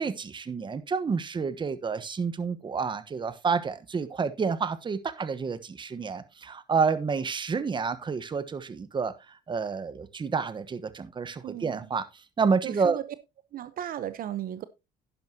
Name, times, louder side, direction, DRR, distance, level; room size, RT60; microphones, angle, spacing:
voice 1, 0.0-12.1 12.4-13.0, right 5 dB, 30° right, 1.1 m, -29 dB
voice 2, 11.4-11.9 12.6-13.0 13.5-14.6, right 11 dB, 55° right, 0.8 m, -35 dB
11.0 x 10.5 x 2.8 m
cardioid pair, 110°, 17 cm